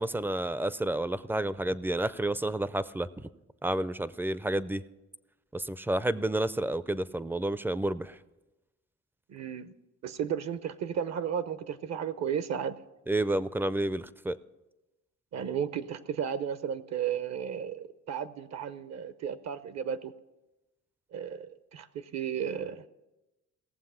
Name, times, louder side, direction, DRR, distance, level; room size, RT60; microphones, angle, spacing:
voice 1, 0.0-3.3 3.6-4.8 5.5-8.2 13.1-14.4, right 1 dB, 5° right, 17 dB, 0.3 m, -30 dB
voice 2, 9.3-9.7 10.0-12.8 15.3-20.1 21.1-22.8, right 8 dB, 60° right, 15 dB, 0.7 m, -34 dB
17.5 x 7.3 x 5.6 m, 1.0 s
cardioid pair, 90°, 30 cm